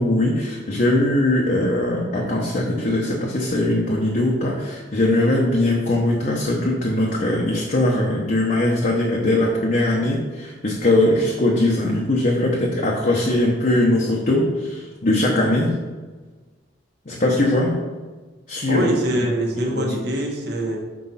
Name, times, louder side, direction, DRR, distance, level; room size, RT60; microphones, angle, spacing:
voice 1, 0.0-15.7 17.1-17.7 18.5-18.9 19.7-19.9, left 1 dB, 45° left, -2 dB, 0.9 m, -20 dB
voice 2, 18.7-20.8, right 1 dB, 60° right, 0 dB, 1.4 m, -23 dB
6.2 x 4.5 x 5.6 m, 1.3 s
head